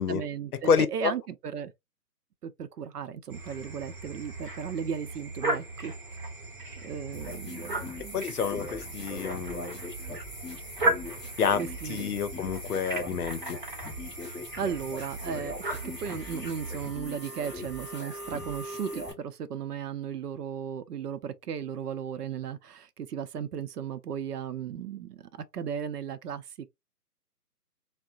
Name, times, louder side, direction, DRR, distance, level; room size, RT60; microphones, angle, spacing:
voice 1, 0.0-1.7 2.4-5.9 6.8-8.2 11.6-12.0 14.6-25.2 25.5-26.7, right 7 dB, 75° right, 0.6 m, -36 dB
voice 2, 0.6-1.1 8.1-9.8 11.4-11.6 11.9-13.6, left 6 dB, 70° left, 0.7 m, -28 dB
sound 1, 3.3-16.9, right 2 dB, 30° right, 0.9 m, -36 dB
sound 2, 7.1-19.1, left 1 dB, ahead, 1.0 m, -41 dB
3.6 x 2.1 x 2.4 m
hypercardioid pair, 165°, 47 cm